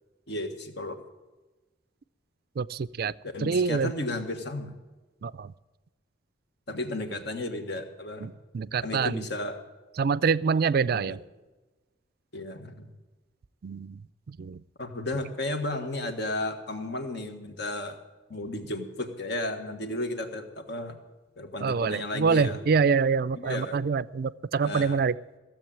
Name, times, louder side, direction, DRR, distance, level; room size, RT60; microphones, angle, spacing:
voice 1, 0.3-1.0 3.2-4.7 6.7-8.3 8.8-9.6 10.9-11.2 12.3-12.9 14.8-18.0 18.3-21.0 21.4-22.6 23.4-23.8 24.6-25.0, left 1 dB, 60° left, 6 dB, 1.6 m, -33 dB
voice 2, 2.6-3.1 3.4-3.9 5.2-5.5 8.2-9.2 10.0-11.2 13.6-14.0 14.3-14.6 21.6-25.2, right 5 dB, 55° right, 18 dB, 0.4 m, -26 dB
16.0 x 7.7 x 8.9 m, 1.2 s
head